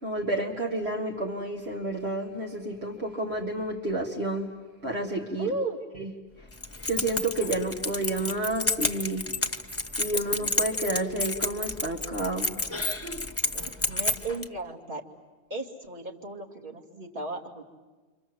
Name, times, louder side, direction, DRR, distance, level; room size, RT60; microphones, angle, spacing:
voice 1, 0.0-4.5 4.8-5.5 6.0-6.1 6.8-9.3 10.0-12.6, right 2 dB, 70° right, 0 dB, 2.2 m, -30 dB
voice 2, 5.4-5.8 13.5-15.0 15.5-17.6, right 3 dB, 50° right, -1 dB, 2.8 m, -35 dB
Keys jangling, 6.5-14.5, left 2 dB, 15° left, 1.0 m, -30 dB
29.5 x 25.5 x 7.9 m, 1.3 s
omnidirectional pair, 1.1 m